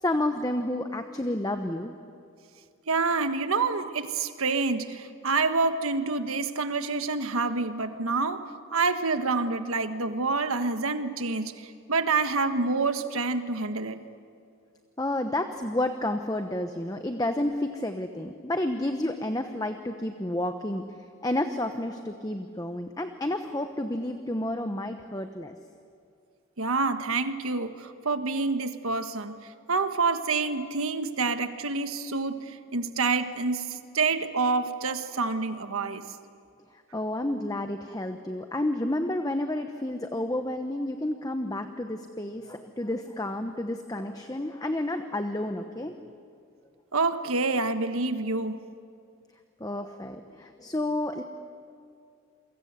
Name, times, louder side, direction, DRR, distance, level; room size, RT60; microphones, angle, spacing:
voice 1, 0.0-1.9 15.0-20.8 21.2-25.5 36.7-45.9 49.6-51.2, left 1 dB, 15° left, 7 dB, 0.9 m, -30 dB
voice 2, 2.9-8.5 8.7-14.0 26.6-36.0 46.9-48.6, right 4 dB, 80° right, 9 dB, 1.5 m, -27 dB
28.5 x 23.5 x 8.2 m, 2.4 s
head